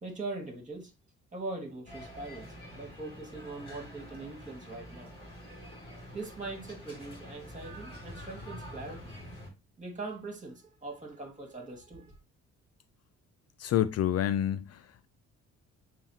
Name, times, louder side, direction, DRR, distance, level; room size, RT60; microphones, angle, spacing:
voice 1, 0.0-0.9 1.3-2.5 2.7-5.1 6.1-9.1 9.8-12.2, right 3 dB, 25° right, 2.0 m, -41 dB
sound 1, 1.9-9.5, equal, 20° left, 2.8 m, -46 dB
voice 2, 13.6-15.1, left 11 dB, 55° left, 0.4 m, -28 dB
7.0 x 2.4 x 2.9 m
cardioid pair, 90°, 30 cm